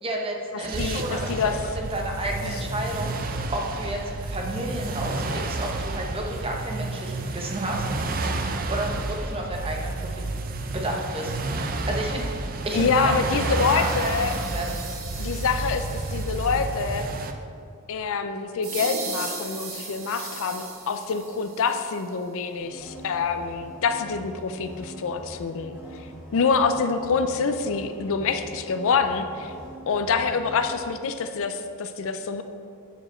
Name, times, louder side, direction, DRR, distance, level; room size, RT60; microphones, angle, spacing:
voice 1, 0.0-1.4 1.7-7.9 8.7-10.2 10.6-11.6 11.9-13.3 13.7-14.8, right 1 dB, 25° right, 0 dB, 0.9 m, -31 dB
sound 1, 0.6-17.3, right 2 dB, 40° right, 0.5 m, -30 dB
voice 2, 0.8-1.6 2.4-2.5 12.7-14.3 15.2-17.1 17.9-25.8 26.3-29.5 29.9-32.4, left 5 dB, 65° left, 8 dB, 0.5 m, -26 dB
sound 2, 13.5-16.9 18.6-22.1, right 4 dB, 65° right, 1.5 m, -38 dB
sound 3, 22.6-30.9, right 1 dB, 10° right, 1.5 m, -43 dB
9.0 x 4.8 x 4.3 m, 2.3 s
head